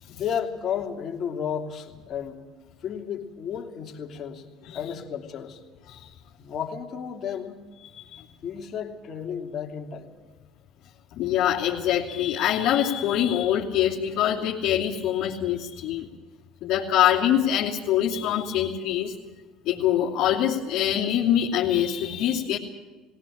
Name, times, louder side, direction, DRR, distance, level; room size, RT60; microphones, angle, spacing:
voice 1, 0.1-2.4 2.8-4.4 4.7-5.6 6.4-7.6 8.4-10.1, left 8 dB, 50° left, 2 dB, 3.1 m, -32 dB
voice 2, 7.8-8.2 11.2-16.1 16.6-19.1 19.6-22.6, left 10 dB, 65° left, -6 dB, 2.9 m, -24 dB
20.0 x 18.0 x 8.8 m, 1.3 s
supercardioid pair, 90°, 0 cm